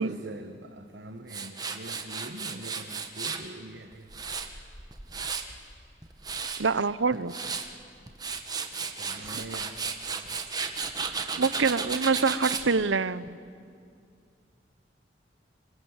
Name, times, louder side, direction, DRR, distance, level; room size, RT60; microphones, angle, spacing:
voice 1, 0.0-4.2 9.0-10.4, right 1 dB, 65° right, 6 dB, 1.2 m, -43 dB
Tools, 1.3-3.4 3.9-5.6 6.0-6.6 7.1-7.7 8.1-12.7, right 5 dB, 20° right, 1.5 m, -34 dB
voice 2, 6.6-7.3 9.2-9.3 11.4-13.4, right 4 dB, 90° right, 16 dB, 0.8 m, -25 dB
25.5 x 24.0 x 8.1 m, 2.3 s
head